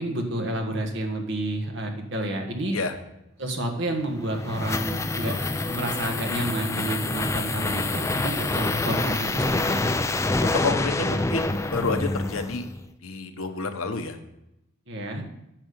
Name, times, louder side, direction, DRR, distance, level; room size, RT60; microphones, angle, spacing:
voice 1, 0.0-2.8 3.4-5.3 5.6-10.0 14.9-15.2, right 1 dB, 60° right, 3 dB, 1.6 m, -30 dB
sound 1, 4.0-12.8, left 2 dB, 15° left, 0.4 m, -27 dB
voice 2, 10.4-12.7 13.0-14.2, left 4 dB, 85° left, 7 dB, 1.0 m, -29 dB
9.0 x 5.9 x 6.8 m, 0.88 s
head